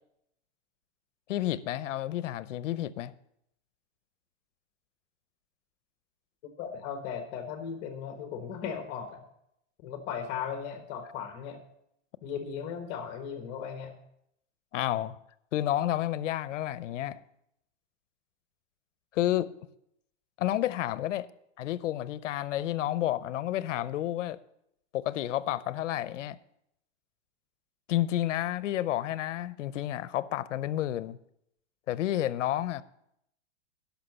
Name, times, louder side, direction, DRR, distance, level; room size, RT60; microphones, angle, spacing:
voice 1, 1.3-3.1 14.7-15.2 15.5-17.2 19.1-19.5 20.4-21.3 21.6-24.4 24.9-26.4 27.9-31.2 31.9-32.8, left 13 dB, 80° left, 0.7 m, -30 dB
voice 2, 6.6-9.2 9.8-11.6 12.2-13.9, left 7 dB, 30° left, 1.3 m, -37 dB
11.5 x 5.9 x 6.9 m
supercardioid pair, 160°, 36 cm